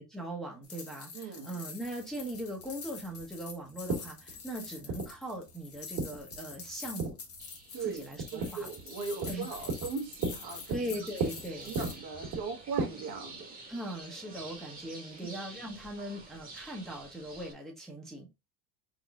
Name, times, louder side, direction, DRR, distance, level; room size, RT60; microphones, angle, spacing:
voice 1, 0.1-7.2 7.8-8.7 9.3-9.5 10.7-11.7 13.7-18.3, right 1 dB, ahead, 1.0 m, -40 dB
sound 1, 0.6-12.0, left 5 dB, 35° left, 1.0 m, -46 dB
voice 2, 1.1-1.5 7.7-10.8 11.6-13.5 15.2-15.3, right 5 dB, 50° right, 1.3 m, -39 dB
sound 2, 1.8-12.8, right 4 dB, 70° right, 2.1 m, -38 dB
sound 3, 7.4-17.5, right 3 dB, 20° right, 1.3 m, -50 dB
4.2 x 4.1 x 2.4 m
supercardioid pair, 105°, 43 cm